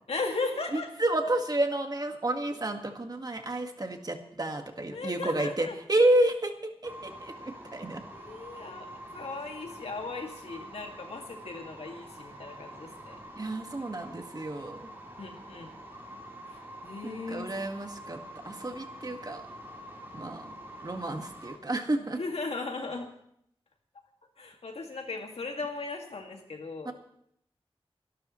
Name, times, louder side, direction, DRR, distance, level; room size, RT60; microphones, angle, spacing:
voice 1, 0.1-0.9 4.9-5.8 8.1-13.2 15.2-15.7 16.5-17.5 22.2-23.1 24.4-26.9, left 3 dB, 90° left, 2 dB, 2.2 m, -37 dB
voice 2, 0.7-8.0 13.4-14.9 17.0-19.4 20.1-20.5 20.8-22.2 26.9-27.0, right 1 dB, 40° right, 4 dB, 1.8 m, -30 dB
sound 1, 6.8-21.6, right 1 dB, 20° right, 4.0 m, -46 dB
29.5 x 12.0 x 3.2 m, 0.71 s
wide cardioid pair, 65°, 10 cm